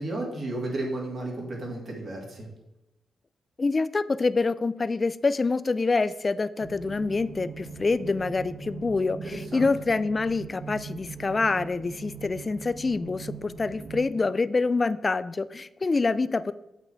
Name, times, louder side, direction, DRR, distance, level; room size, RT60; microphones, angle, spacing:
voice 1, 0.0-2.5 9.2-9.7, right 2 dB, 45° right, -1 dB, 2.3 m, -33 dB
voice 2, 3.6-16.5, left 3 dB, 30° left, 15 dB, 0.3 m, -26 dB
sound 1, 6.6-14.1, right 4 dB, 60° right, 1.3 m, -41 dB
8.0 x 5.6 x 4.5 m, 0.91 s
cardioid pair, 115°, 0 cm